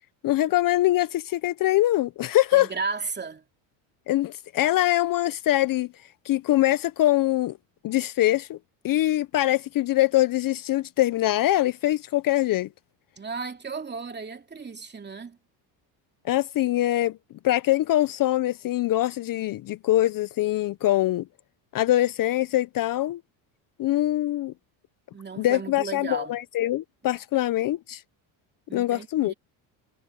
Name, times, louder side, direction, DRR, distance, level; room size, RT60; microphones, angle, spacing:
voice 1, 0.2-2.7 4.1-5.9 6.2-7.6 7.8-8.6 8.8-12.7 16.2-17.2 17.4-21.3 21.7-23.2 23.8-24.5 25.4-28.0 28.7-29.3, left 15 dB, 45° left, 0.7 m, -23 dB
voice 2, 2.5-3.4 13.2-15.4 25.1-26.3 28.7-29.3, right 4 dB, 20° right, 2.7 m, -34 dB
supercardioid pair, 95°, 46 cm